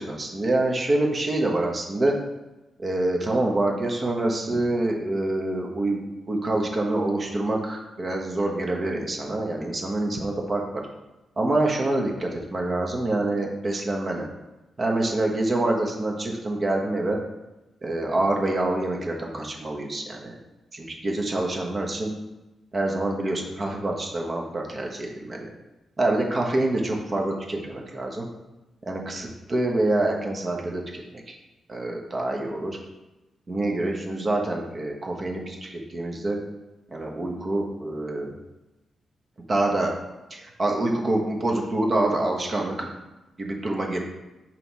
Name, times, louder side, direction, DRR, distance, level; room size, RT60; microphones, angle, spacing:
voice 1, 0.0-2.1 2.8-10.8 11.4-14.3 14.8-17.2 17.8-20.4 20.7-22.1 22.7-25.5 26.0-28.3 28.9-31.3 31.7-32.8 33.5-36.4 36.9-38.3 39.5-39.9 40.3-42.9 43.4-44.0, right 2 dB, 35° right, 0 dB, 1.1 m, -26 dB
5.7 x 4.6 x 4.1 m, 1.0 s
cardioid pair, 115°, 0 cm